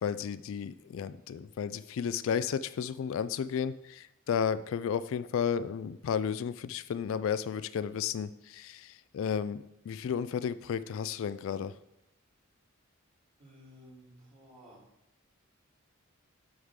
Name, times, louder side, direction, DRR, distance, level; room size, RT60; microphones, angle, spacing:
voice 1, 0.0-11.7, left 7 dB, 65° left, 15 dB, 0.3 m, -33 dB
voice 2, 13.4-14.8, equal, 35° right, -6 dB, 3.4 m, -55 dB
8.0 x 6.5 x 3.6 m, 0.82 s
head